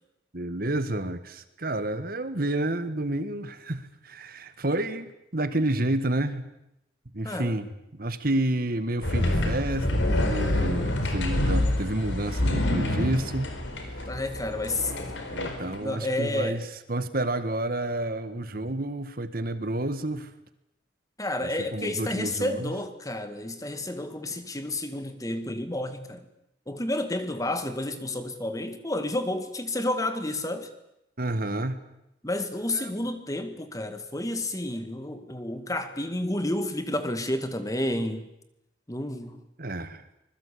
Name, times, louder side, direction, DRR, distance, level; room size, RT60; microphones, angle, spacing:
voice 1, 0.3-6.5 7.1-13.5 13.9-14.1 15.3-20.3 21.4-22.7 31.2-31.8 32.7-33.0 39.6-40.0, right 1 dB, 50° right, 11 dB, 1.7 m, -30 dB
voice 2, 7.2-7.6 14.1-15.1 15.8-16.6 21.2-26.2 26.7-30.7 32.2-38.3 38.9-39.4, left 1 dB, 20° left, 9 dB, 2.0 m, -30 dB
sound 1, 9.0-15.8, left 1 dB, 75° left, 4.5 m, -27 dB
25.5 x 21.5 x 8.6 m, 0.85 s
head